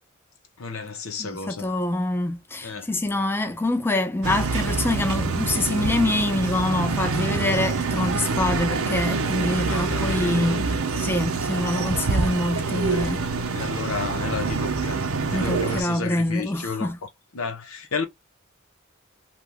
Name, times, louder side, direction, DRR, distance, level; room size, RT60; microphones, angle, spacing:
voice 1, 0.6-1.7 2.6-2.9 9.7-10.6 12.9-13.1 13.5-15.0 15.3-18.0, left 5 dB, 85° left, 0.8 m, -32 dB
voice 2, 1.2-13.3 15.3-17.0, left 2 dB, 10° left, 0.3 m, -25 dB
sound 1, 4.2-15.8, right 4 dB, 85° right, 0.7 m, -26 dB
2.8 x 2.3 x 3.4 m
head